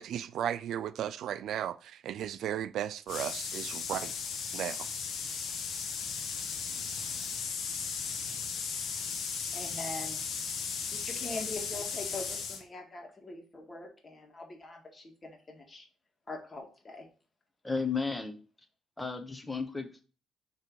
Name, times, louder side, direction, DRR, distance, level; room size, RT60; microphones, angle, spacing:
voice 1, 0.0-4.1 4.5-4.9, right 10 dB, 75° right, 0.4 m, -35 dB
sound 1, 3.1-12.6, left 6 dB, 70° left, 1.1 m, -36 dB
voice 2, 9.5-10.3 10.9-15.9 16.3-17.1, left 2 dB, 30° left, 1.8 m, -43 dB
voice 3, 17.6-18.4 19.0-20.0, left 4 dB, 15° left, 1.1 m, -33 dB
6.5 x 3.3 x 4.7 m
cardioid pair, 90°, 0 cm